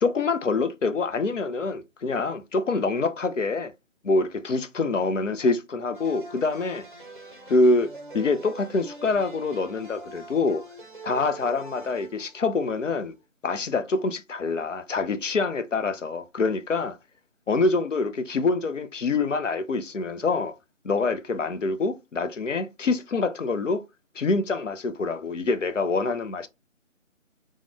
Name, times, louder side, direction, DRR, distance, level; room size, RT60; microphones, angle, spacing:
voice 1, 0.0-3.7 4.0-6.9 7.5-10.6 11.0-13.1 13.4-17.0 17.5-20.5 20.8-23.8 24.2-26.5, left 3 dB, 65° left, 0.5 m, -25 dB
sound 1, 5.9-12.9, right 2 dB, 40° right, 0.5 m, -44 dB
3.5 x 2.1 x 3.3 m
figure-of-eight pair, 160°, 40 cm